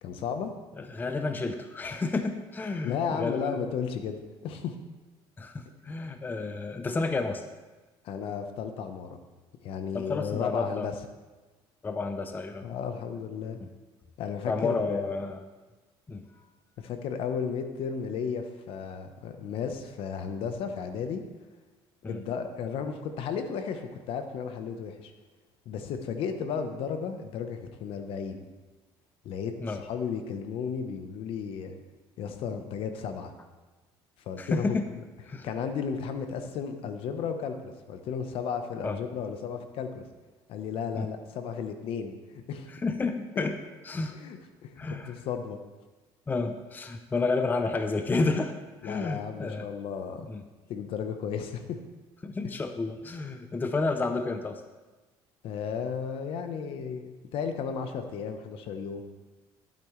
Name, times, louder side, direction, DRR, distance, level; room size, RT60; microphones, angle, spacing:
voice 1, 0.0-0.5 2.8-4.7 8.0-9.2 9.6-10.9 12.6-13.6 14.2-15.1 16.8-21.2 22.0-25.1 25.7-28.4 29.2-31.8 32.2-33.3 34.3-35.0 35.4-40.0 40.5-42.7 44.1-45.6 48.8-50.2 50.7-51.8 55.4-59.0, left 6 dB, 65° left, 7 dB, 1.0 m, -34 dB
voice 2, 0.8-3.6 5.4-7.4 9.9-10.9 11.8-12.7 13.6-13.7 14.5-15.4 16.1-16.2 22.0-22.2 29.6-29.8 34.4-34.9 35.3-35.5 38.8-39.0 41.0-41.1 42.7-43.6 43.8-44.1 44.8-45.1 46.3-48.5 48.8-49.7 50.2-50.4 52.2-54.6, left 3 dB, 20° left, 8 dB, 0.6 m, -30 dB
12.0 x 8.6 x 3.2 m, 1.2 s
cardioid pair, 115°, 10 cm